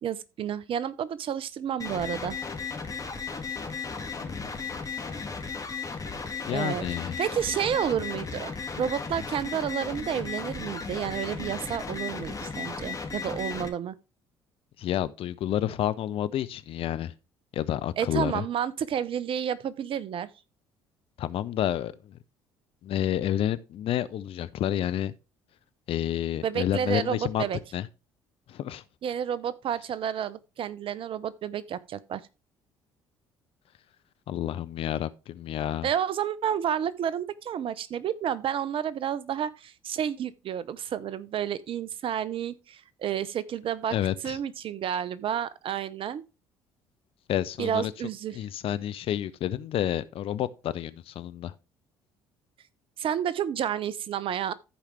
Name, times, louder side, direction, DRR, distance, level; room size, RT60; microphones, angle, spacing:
voice 1, 0.0-2.4 6.5-8.5 8.8-14.0 18.0-20.3 26.4-27.6 29.0-32.3 35.8-44.0 44.2-46.2 47.6-48.4 53.0-54.5, right 9 dB, 50° right, 0.8 m, -30 dB
sound 1, 1.8-13.7, left 5 dB, 30° left, 2.2 m, -35 dB
voice 2, 4.2-4.7 6.5-7.2 14.8-17.1 17.5-18.4 21.2-22.2 22.8-25.1 25.9-27.5 27.7-27.9 28.5-28.8 34.3-35.9 43.9-44.4 47.3-47.9 48.3-51.5, left 11 dB, 55° left, 0.7 m, -29 dB
14.0 x 5.0 x 3.3 m
hypercardioid pair, 55°, 12 cm